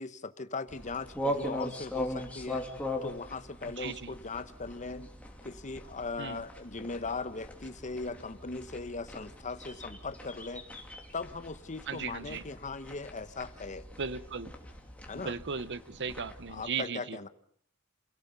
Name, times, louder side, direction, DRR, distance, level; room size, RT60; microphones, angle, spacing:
voice 1, 0.0-2.6 3.0-5.1 5.4-10.6 11.1-13.8 15.1-15.4 16.5-17.3, left 3 dB, 35° left, 12 dB, 1.0 m, -39 dB
sound 1, 0.7-16.7, left 1 dB, 5° left, 2.9 m, -41 dB
voice 2, 3.6-4.1 6.2-6.4 11.9-12.4 14.0-14.5 15.1-17.2, right 5 dB, 55° right, 16 dB, 0.9 m, -37 dB
28.5 x 17.5 x 6.9 m, 0.64 s
head